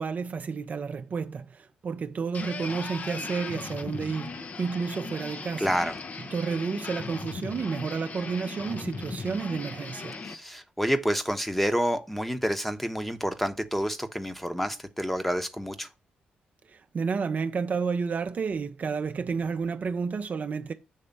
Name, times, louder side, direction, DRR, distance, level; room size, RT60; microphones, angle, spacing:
voice 1, 0.0-5.7 6.3-10.2 16.7-20.7, right 5 dB, 50° right, 0.5 m, -31 dB
sound 1, 2.3-10.4, left 4 dB, 45° left, 0.7 m, -38 dB
voice 2, 5.6-6.0 10.2-15.9, equal, 5° left, 0.9 m, -28 dB
7.0 x 3.3 x 5.3 m
cardioid pair, 65°, 4 cm